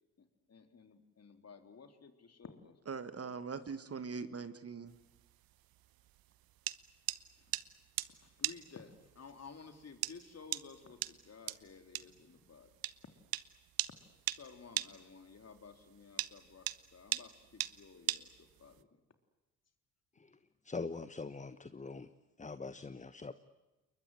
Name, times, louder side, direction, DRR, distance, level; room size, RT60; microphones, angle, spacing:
voice 1, 0.2-3.0 7.4-7.5 8.1-12.7 14.3-18.9, left 5 dB, 35° left, 7 dB, 3.7 m, -55 dB
voice 2, 2.9-5.0, right 5 dB, 35° right, 12 dB, 1.9 m, -42 dB
sound 1, 4.9-18.8, right 15 dB, 55° right, 1.1 m, -40 dB
voice 3, 20.6-22.1 22.4-23.3, left 4 dB, 15° left, 13 dB, 1.1 m, -43 dB
29.5 x 22.0 x 8.1 m, 1.1 s
figure-of-eight pair, 50°, 43 cm